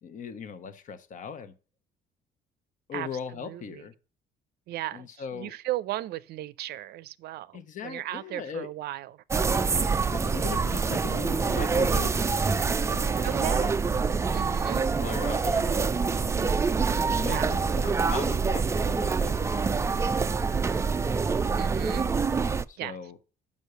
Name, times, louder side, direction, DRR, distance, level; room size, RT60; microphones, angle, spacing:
voice 1, 0.0-1.5 2.9-3.9 4.9-5.5 7.5-8.7 10.1-12.5 12.8-13.7 14.9-16.5 17.1-20.1 21.3-21.4 22.7-23.2, left 6 dB, 50° left, 1.0 m, -39 dB
voice 2, 3.4-3.8 4.7-9.2 13.2-13.8 14.3-14.9 17.3-17.5 17.9-18.2 21.6-22.1 22.8-23.0, right 15 dB, 70° right, 0.6 m, -36 dB
sound 1, 9.3-22.6, right 5 dB, 15° right, 0.3 m, -26 dB
6.4 x 5.4 x 6.6 m
cardioid pair, 110°, 17 cm